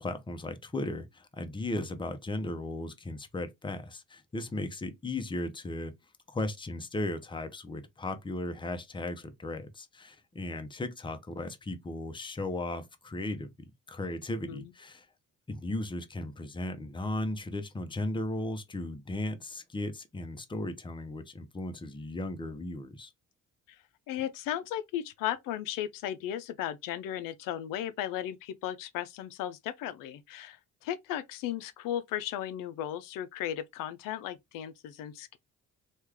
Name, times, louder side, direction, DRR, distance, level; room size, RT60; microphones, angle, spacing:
voice 1, 0.0-5.9 6.3-13.5 13.9-15.1 15.5-23.1, left 2 dB, 15° left, 0.6 m, -36 dB
voice 2, 24.1-35.4, left 11 dB, 85° left, 0.5 m, -36 dB
3.1 x 2.4 x 3.4 m
cardioid pair, 85°, 32 cm